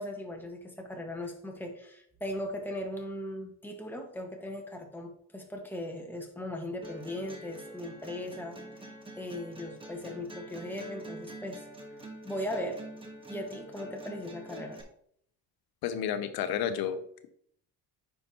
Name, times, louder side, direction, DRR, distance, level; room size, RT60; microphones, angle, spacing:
voice 1, 0.0-8.6 9.2-11.7 12.2-12.8 13.3-14.8, left 1 dB, 5° left, 1 dB, 1.5 m, -38 dB
sound 1, 6.8-14.8, right 1 dB, 15° right, 1.3 m, -46 dB
voice 2, 15.8-17.0, left 9 dB, 75° left, 9 dB, 0.8 m, -31 dB
9.5 x 5.6 x 2.9 m, 0.66 s
cardioid pair, 105°, 36 cm